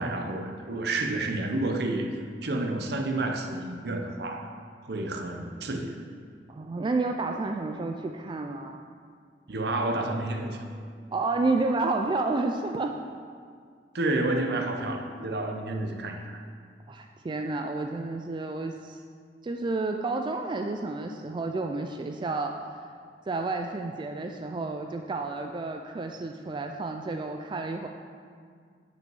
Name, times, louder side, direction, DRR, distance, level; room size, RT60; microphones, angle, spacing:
voice 1, 0.0-4.6 4.8-6.0 9.5-10.6 13.9-16.4, right 2 dB, 65° right, 4 dB, 0.8 m, -30 dB
voice 2, 6.5-8.9 11.1-13.0 16.9-19.0 19.4-22.5 23.3-27.9, right 3 dB, 25° right, 4 dB, 0.3 m, -30 dB
6.2 x 5.3 x 6.9 m, 2.1 s
head